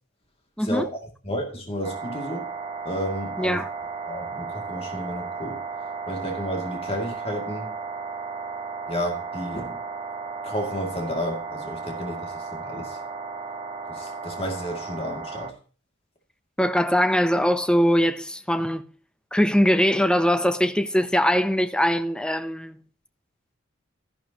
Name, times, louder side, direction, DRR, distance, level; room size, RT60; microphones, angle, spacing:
voice 1, 1.2-2.5 2.8-3.6 4.1-5.6 6.1-7.7 8.9-9.8 10.4-13.0 13.9-15.5, equal, 30° left, 2.4 m, -32 dB
sound 1, 1.8-15.5, right 4 dB, 25° right, 1.4 m, -34 dB
voice 2, 3.4-3.7 16.6-18.8 19.3-22.8, equal, 5° left, 0.6 m, -21 dB
13.5 x 11.5 x 2.9 m
head